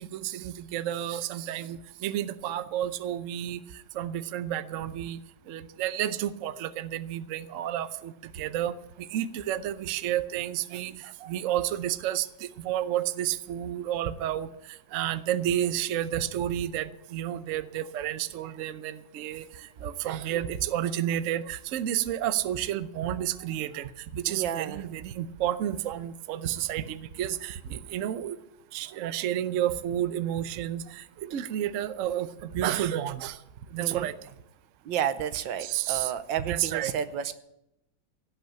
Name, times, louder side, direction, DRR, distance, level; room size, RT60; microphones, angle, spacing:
voice 1, 0.0-3.6 3.9-5.2 5.5-10.9 11.3-14.5 14.9-28.4 28.7-33.4 33.7-34.1 35.6-36.1 36.4-36.9, right 11 dB, 65° right, 13 dB, 0.8 m, -31 dB
voice 2, 11.0-11.6 24.3-24.9 33.8-34.1 34.8-37.3, right 9 dB, 85° right, 12 dB, 1.5 m, -32 dB
17.0 x 6.0 x 8.8 m, 0.84 s
omnidirectional pair, 2.0 m